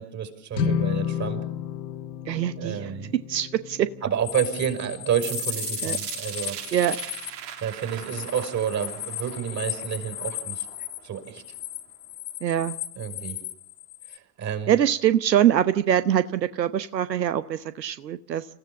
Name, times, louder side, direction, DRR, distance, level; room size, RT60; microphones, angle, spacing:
voice 1, 0.0-1.4 2.6-3.1 4.0-6.6 7.6-10.7 11.0-11.4 13.0-13.4 14.1-14.8, right 8 dB, 35° right, 8 dB, 5.8 m, -29 dB
sound 1, 0.5-7.0, left 7 dB, 80° left, 2.0 m, -32 dB
voice 2, 2.3-2.9 3.3-3.9 5.8-6.0 6.7-7.0 12.4-12.8 14.7-18.5, right 10 dB, 85° right, 13 dB, 1.0 m, -23 dB
sound 2, 4.2-14.2, left 14 dB, 45° left, 1.9 m, -36 dB
sound 3, 5.2-11.2, right 11 dB, 65° right, 2.9 m, -39 dB
28.0 x 15.5 x 7.3 m, 0.70 s
hypercardioid pair, 85°, 49 cm